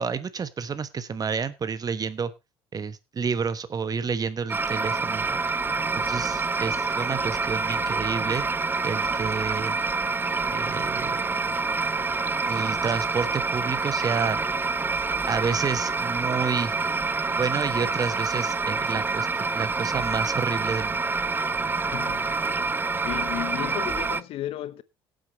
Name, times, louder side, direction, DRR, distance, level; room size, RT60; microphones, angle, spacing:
voice 1, 0.0-2.3 2.7-5.4 6.0-8.4 8.8-9.8 10.5-11.2 12.5-14.4 15.2-16.7 17.4-19.3 19.5-21.0, right 5 dB, 35° right, 1.3 m, -29 dB
sound 1, 4.5-24.2, right 4 dB, 20° right, 0.6 m, -27 dB
voice 2, 21.9-22.3 23.0-24.8, left 14 dB, 60° left, 0.9 m, -34 dB
18.0 x 7.9 x 3.2 m
hypercardioid pair, 70°, 11 cm